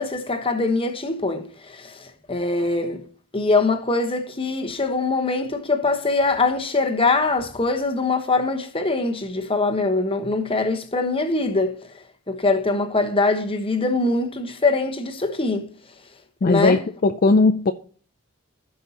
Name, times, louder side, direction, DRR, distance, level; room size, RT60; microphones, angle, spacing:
voice 1, 0.0-3.0 3.3-11.7 12.3-15.7 16.4-16.8, left 3 dB, 25° left, 1.1 m, -23 dB
voice 2, 16.4-17.7, left 3 dB, 40° left, 0.4 m, -18 dB
16.0 x 5.5 x 2.9 m
head